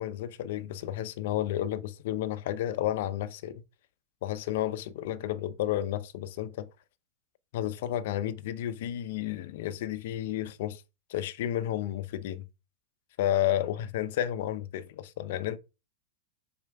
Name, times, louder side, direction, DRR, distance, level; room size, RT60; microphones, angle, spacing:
voice 1, 0.0-3.6 4.2-6.7 7.5-10.8 11.1-12.5 13.2-15.6, left 12 dB, 60° left, 0.7 m, -31 dB
5.6 x 4.4 x 4.8 m
supercardioid pair, 160°, 0 cm